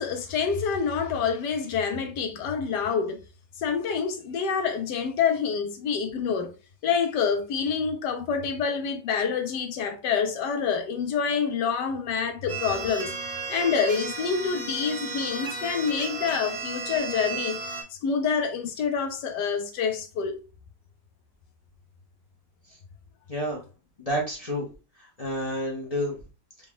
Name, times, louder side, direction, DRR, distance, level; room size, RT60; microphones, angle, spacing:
voice 1, 0.0-3.2 3.6-6.5 6.8-13.1 13.5-17.6 17.9-20.4, left 6 dB, 70° left, 1.1 m, -27 dB
sound 1, 12.5-17.8, right 3 dB, 45° right, 0.9 m, -34 dB
voice 2, 23.3-23.6 24.0-24.7 25.0-26.2, equal, 55° left, 0.4 m, -30 dB
3.8 x 2.4 x 3.5 m
omnidirectional pair, 2.2 m